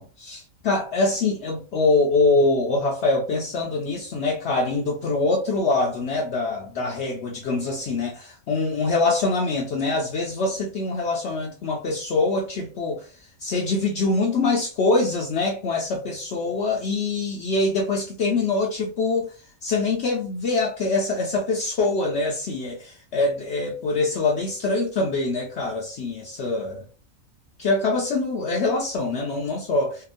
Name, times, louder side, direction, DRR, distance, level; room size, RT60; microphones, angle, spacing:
voice 1, 0.0-13.1 13.4-19.3 19.6-26.9 27.6-30.0, left 3 dB, 65° left, 0.7 m, -24 dB
2.8 x 2.3 x 2.4 m
omnidirectional pair, 1.4 m